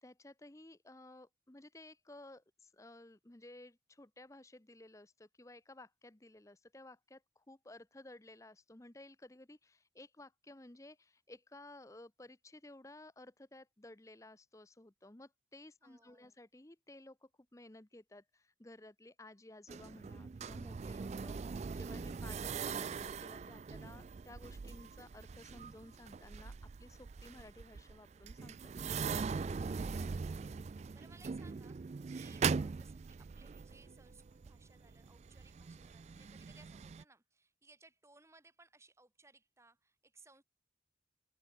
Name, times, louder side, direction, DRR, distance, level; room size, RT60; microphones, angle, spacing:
voice 1, 0.0-26.5 26.8-28.6, left 2 dB, 15° left, 0.8 m, -56 dB
voice 2, 15.8-16.3 29.6-40.4, right 3 dB, 15° right, 4.0 m, -64 dB
sound 1, 19.7-37.0, right 5 dB, 35° right, 0.3 m, -41 dB
head